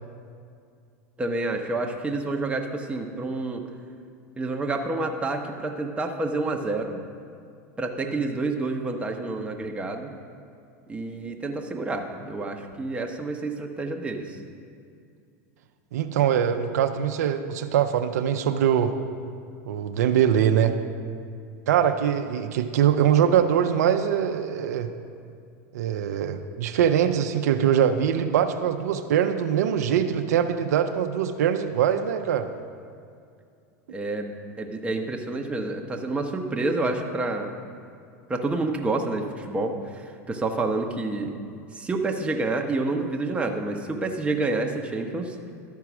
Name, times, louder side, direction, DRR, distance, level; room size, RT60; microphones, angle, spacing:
voice 1, 1.2-3.6 4.4-7.0 7.8-10.1 10.9-14.4 33.9-34.3 34.6-37.5 38.3-41.4 41.7-45.5, right 2 dB, 15° right, 2 dB, 0.9 m, -28 dB
voice 2, 15.9-18.9 19.7-20.8 21.7-24.9 25.7-32.5, right 9 dB, 85° right, 7 dB, 0.5 m, -22 dB
12.5 x 4.6 x 6.0 m, 2.3 s
supercardioid pair, 110°, 8 cm